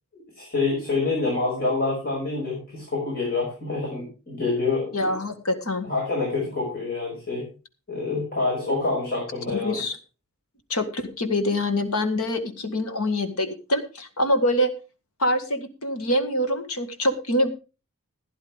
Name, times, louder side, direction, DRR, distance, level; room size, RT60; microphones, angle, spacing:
voice 1, 0.1-5.2 5.8-7.5 7.9-9.8, left 3 dB, 45° left, -3 dB, 6.2 m, -27 dB
voice 2, 4.9-5.9 9.5-10.0 10.7-14.7 15.2-17.5, left 1 dB, 85° left, 8 dB, 1.9 m, -25 dB
15.5 x 10.5 x 3.6 m, 0.33 s
head